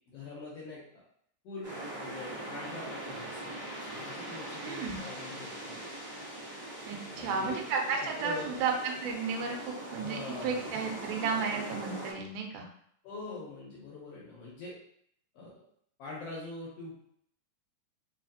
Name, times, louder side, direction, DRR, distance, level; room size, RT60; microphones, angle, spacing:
voice 1, 0.1-1.0 1.4-5.8 7.1-7.6 8.2-8.6 10.0-10.8 13.0-14.8 15.3-15.6 16.0-16.9, left 3 dB, 75° left, -5 dB, 1.5 m, -44 dB
sound 1, 1.6-12.1, right 1 dB, 40° right, 1.3 m, -41 dB
voice 2, 4.6-5.0 6.9-12.7, right 5 dB, 90° right, 2 dB, 2.2 m, -33 dB
4.9 x 2.4 x 2.6 m, 0.67 s
omnidirectional pair, 3.6 m